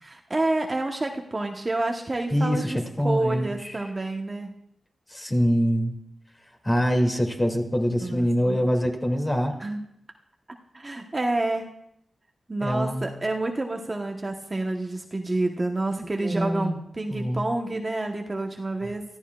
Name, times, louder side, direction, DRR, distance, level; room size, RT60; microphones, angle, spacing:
voice 1, 0.0-2.8 3.0-4.6 8.0-8.6 9.6-9.8 10.7-11.7 12.5-19.0, right 2 dB, 30° right, 2 dB, 1.1 m, -28 dB
voice 2, 2.3-3.5 5.1-6.0 6.6-9.5 12.6-13.1 16.0-16.8 17.1-17.5, equal, 20° left, 2 dB, 2.5 m, -24 dB
24.5 x 14.0 x 2.4 m, 0.75 s
cardioid pair, 70°, 0 cm